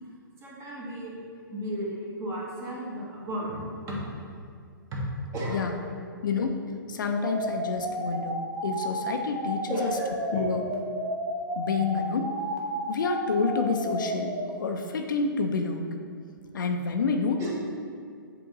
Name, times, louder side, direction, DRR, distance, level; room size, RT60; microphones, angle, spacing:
voice 1, 0.4-1.2 1.5-4.2 4.9-5.0 5.3-5.8 9.7-10.4 17.4-17.5, right 1 dB, 25° right, -4 dB, 1.5 m, -34 dB
voice 2, 6.2-9.9 10.3-10.7 11.6-12.3 12.9-16.0 16.5-17.4, left 4 dB, 60° left, 4 dB, 0.6 m, -28 dB
sound 1, 7.1-14.4, right 1 dB, 5° right, 0.9 m, -32 dB
7.6 x 3.6 x 4.0 m, 2.3 s
figure-of-eight pair, 120°, 12 cm